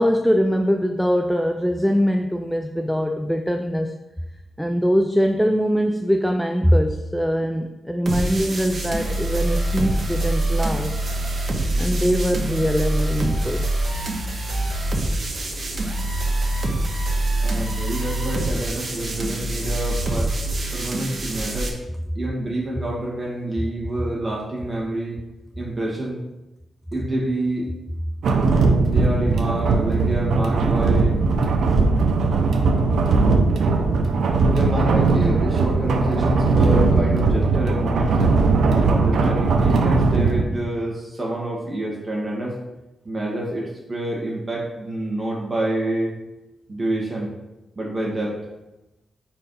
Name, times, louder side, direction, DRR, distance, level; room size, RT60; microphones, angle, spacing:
voice 1, 0.0-3.9 4.6-11.0 11.8-13.7, equal, ahead, 5 dB, 0.4 m, -22 dB
sound 1, 8.1-21.7, right 1 dB, 40° right, 1.2 m, -25 dB
voice 2, 17.4-20.3 20.7-21.7 22.1-25.2 25.6-26.2 26.9-27.7 28.8-31.2 32.9-33.3 34.5-38.4 38.7-42.5 43.0-46.1 46.7-47.3 47.8-48.4, right 1 dB, 20° right, -3 dB, 2.0 m, -27 dB
sound 2, 28.2-40.4, right 3 dB, 85° right, 0.7 m, -19 dB
4.9 x 4.5 x 5.4 m, 0.96 s
wide cardioid pair, 140°, 0 cm